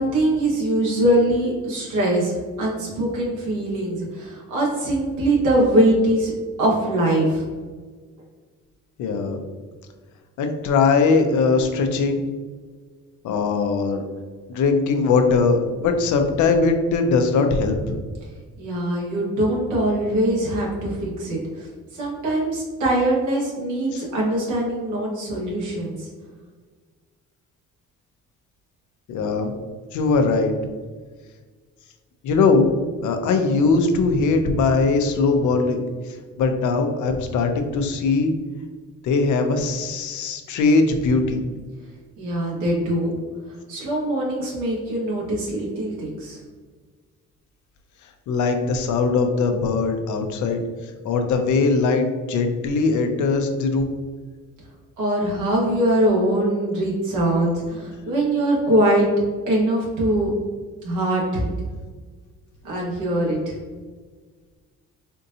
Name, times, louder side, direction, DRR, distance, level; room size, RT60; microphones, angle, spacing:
voice 1, 0.0-6.3 6.6-7.5 18.6-26.1 42.2-43.1 43.5-46.4 55.0-59.1 59.5-60.3 60.8-61.5 62.6-63.6, right 1 dB, 85° right, -4 dB, 1.5 m, -22 dB
voice 2, 9.0-9.4 10.4-12.2 13.2-14.0 14.5-18.0 23.9-24.1 29.1-29.5 29.9-30.5 32.2-32.7 33.0-38.3 39.0-41.4 48.3-50.6 51.0-53.9, left 4 dB, 75° left, 5 dB, 0.6 m, -20 dB
4.4 x 2.7 x 2.6 m, 1.5 s
cardioid pair, 90°, 30 cm